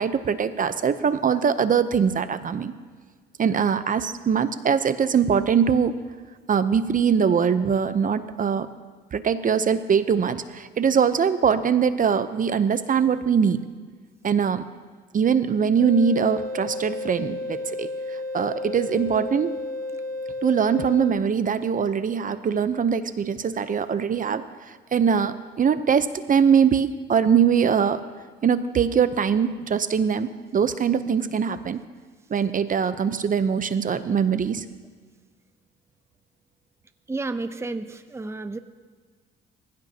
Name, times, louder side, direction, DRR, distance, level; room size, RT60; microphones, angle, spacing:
voice 1, 0.0-2.7 3.4-6.0 6.5-8.7 9.1-13.6 14.2-14.7 15.1-19.5 20.4-28.0 28.4-31.8 32.3-34.6, right 7 dB, 45° right, 12 dB, 0.7 m, -22 dB
sound 1, 15.8-21.1, left 2 dB, 20° left, 5.5 m, -32 dB
voice 2, 37.1-38.6, right 3 dB, 15° right, 10 dB, 0.7 m, -31 dB
25.5 x 15.5 x 2.9 m, 1.5 s
cardioid pair, 90°, 20 cm